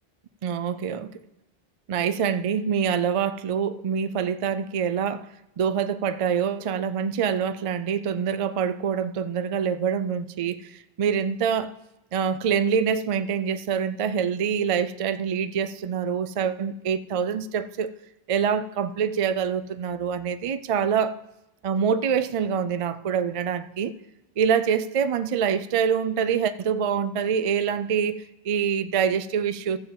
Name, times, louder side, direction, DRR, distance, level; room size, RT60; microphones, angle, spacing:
voice 1, 0.4-1.1 1.9-5.3 5.6-11.7 12.1-17.9 18.3-21.2 21.6-23.9 24.4-29.8, right 7 dB, 55° right, 0.4 m, -25 dB
13.5 x 4.7 x 7.4 m
omnidirectional pair, 1.1 m